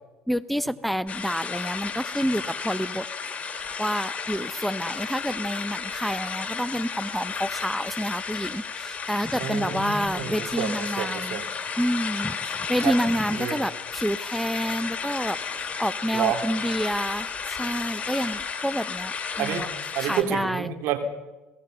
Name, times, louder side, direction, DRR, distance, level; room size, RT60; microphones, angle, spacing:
voice 1, 0.3-3.1 3.8-11.4 11.8-15.4 15.8-19.7 20.0-20.7, equal, ahead, 16 dB, 0.7 m, -28 dB
sound 1, 1.1-20.2, left 5 dB, 30° left, 3.4 m, -33 dB
voice 2, 9.4-11.5 12.8-12.9 13.4-13.6 16.1-16.4 19.4-19.6 19.9-21.0, right 10 dB, 70° right, 6 dB, 3.3 m, -29 dB
28.0 x 18.5 x 5.6 m, 1.1 s
hypercardioid pair, 75°, 4 cm